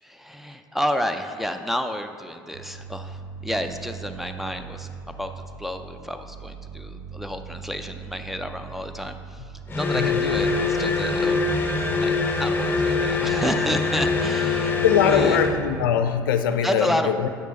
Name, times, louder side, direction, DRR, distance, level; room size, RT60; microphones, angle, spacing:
voice 1, 0.0-5.3 5.6-11.4 12.0-15.4 16.6-17.1, equal, ahead, 6 dB, 0.5 m, -30 dB
sound 1, 2.5-15.9, right 6 dB, 50° right, 0.6 m, -39 dB
sound 2, 9.7-15.6, left 4 dB, 15° left, 0.9 m, -23 dB
voice 2, 9.9-10.3 13.1-13.4 14.8-17.3, left 8 dB, 70° left, 8 dB, 0.5 m, -22 dB
8.3 x 5.9 x 4.1 m, 2.4 s
figure-of-eight pair, 65°, 12 cm